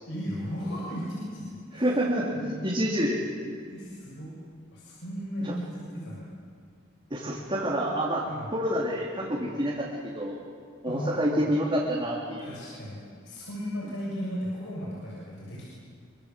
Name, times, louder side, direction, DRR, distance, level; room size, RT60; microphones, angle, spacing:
voice 1, 0.1-1.9 2.4-2.7 3.7-4.3 4.7-5.6 5.9-6.3 8.2-8.5 10.8-11.4 12.4-15.7, equal, 65° left, -5 dB, 6.7 m, -36 dB
voice 2, 1.7-3.2 5.4-5.5 7.1-8.2 8.5-10.4 10.8-12.5, equal, 25° right, -5 dB, 3.3 m, -28 dB
26.0 x 25.0 x 7.7 m, 2.1 s
head